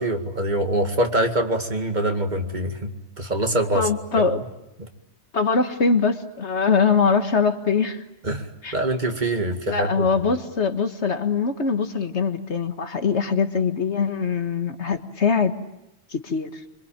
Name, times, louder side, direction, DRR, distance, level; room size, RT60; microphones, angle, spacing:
voice 1, 0.0-3.9 4.2-4.3 4.8-4.9 8.2-8.5 8.7-10.1, right 1 dB, 40° right, 4 dB, 2.3 m, -24 dB
voice 2, 3.7-4.4 5.3-8.0 8.6-8.8 9.7-15.5 16.1-16.5, left 5 dB, 85° left, 7 dB, 2.0 m, -22 dB
25.5 x 25.0 x 8.9 m, 0.89 s
omnidirectional pair, 1.1 m